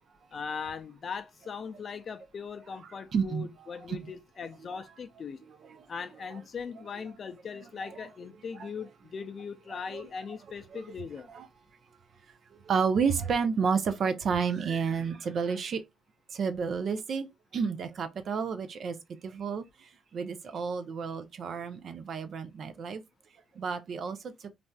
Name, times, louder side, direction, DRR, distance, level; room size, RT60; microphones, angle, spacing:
voice 1, 0.3-5.4 5.9-11.3, left 6 dB, 50° left, 0.4 m, -39 dB
voice 2, 3.1-3.5 3.9-4.0 4.7-4.8 5.5-5.9 6.3-6.4 7.8-8.0 8.5-8.7 9.9-10.0 10.7-10.9 11.3-11.5 12.5-15.8 16.3-17.3 17.5-19.0 19.2-23.0 23.5-24.5, right 6 dB, 60° right, 0.5 m, -31 dB
3.2 x 2.5 x 2.2 m
supercardioid pair, 65°, 0 cm